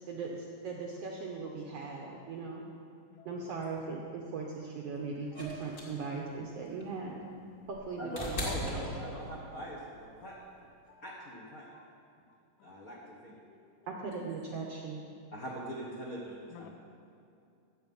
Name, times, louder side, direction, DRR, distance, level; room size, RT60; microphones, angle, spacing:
voice 1, 0.1-2.6 3.2-7.2 7.7-9.2 13.9-15.0, right 4 dB, 70° right, -1 dB, 1.5 m, -39 dB
voice 2, 1.5-2.4 2.7-2.8 3.2-3.4 5.3-5.4 6.3-6.4 7.0-7.1 10.9-11.0 11.3-11.5 11.7-12.0 12.3-12.8 13.0-13.9 16.5-16.7, left 11 dB, 80° left, 7 dB, 1.9 m, -59 dB
sound 1, 5.3-9.6 10.9-11.0, equal, 30° left, 1.5 m, -39 dB
voice 3, 8.0-10.4 11.0-11.7 12.6-13.0 13.2-13.4 15.3-16.7, equal, 60° left, -4 dB, 0.9 m, -42 dB
13.5 x 8.1 x 5.5 m, 2.5 s
omnidirectional pair, 3.8 m